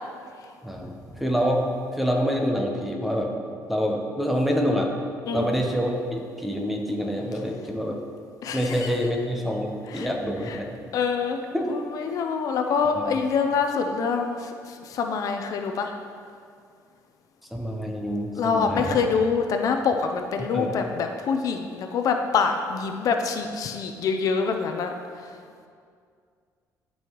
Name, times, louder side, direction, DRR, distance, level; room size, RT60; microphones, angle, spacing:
voice 1, 0.6-1.7 1.9-4.9 5.3-8.0 8.5-10.7 11.5-11.7 12.8-13.1 17.5-19.0 20.4-20.8, equal, ahead, 1 dB, 0.8 m, -27 dB
voice 2, 8.4-8.9 9.9-10.1 10.5-10.6 10.9-11.4 11.7-15.9 18.3-24.9, left 5 dB, 60° left, 5 dB, 0.5 m, -25 dB
12.0 x 5.5 x 3.0 m, 2.2 s
cardioid pair, 140°, 7 cm